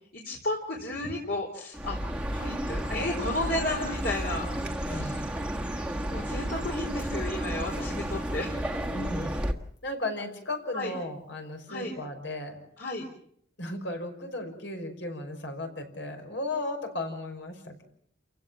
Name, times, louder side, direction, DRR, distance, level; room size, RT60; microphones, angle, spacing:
voice 1, 0.1-2.0 2.3-4.5 4.9-5.1 6.1-8.6 10.7-10.9 11.7-11.9 12.8-13.1, left 2 dB, 55° left, -1 dB, 4.1 m, -33 dB
Chirp tweet, 1.7-9.5, equal, 5° right, 1.6 m, -32 dB
voice 2, 4.9-5.4 8.9-9.4 9.8-12.6 13.6-17.8, left 2 dB, 70° left, 4 dB, 5.6 m, -35 dB
30.0 x 16.0 x 7.2 m, 0.68 s
head